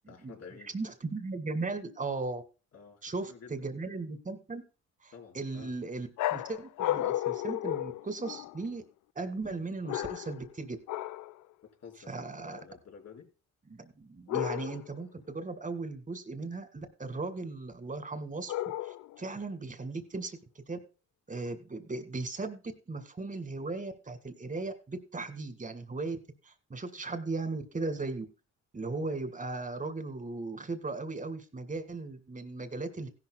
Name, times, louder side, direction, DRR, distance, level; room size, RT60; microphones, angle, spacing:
voice 1, 0.1-0.7 2.7-3.7 5.1-5.7 11.8-13.3, left 6 dB, 60° left, 0 dB, 4.4 m, -51 dB
voice 2, 0.7-2.4 3.0-4.6 5.0-8.8 9.2-10.8 12.1-12.6 13.7-18.5 18.8-20.4 20.7-20.8 21.3-26.2 26.4-28.3 28.7-33.1, right 3 dB, 25° right, 9 dB, 2.1 m, -37 dB
sound 1, 6.2-8.7 9.8-10.5 10.9-11.3 14.3-15.0 18.5-19.2, left 14 dB, 75° left, 0.5 m, -33 dB
16.0 x 11.5 x 2.3 m, 0.32 s
cardioid pair, 90°, 30 cm